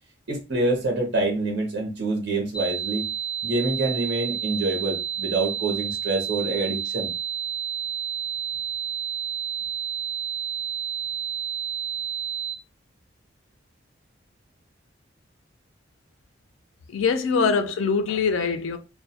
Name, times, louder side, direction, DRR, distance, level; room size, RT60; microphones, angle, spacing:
voice 1, 0.3-3.1 3.4-7.1 17.2-17.5, right 2 dB, 70° right, 0.7 m, -26 dB
sound 1, 2.5-12.5, right 9 dB, 20° left, 0.6 m, -30 dB
voice 2, 16.9-18.8, left 5 dB, 90° left, 0.4 m, -23 dB
2.2 x 2.1 x 2.7 m
head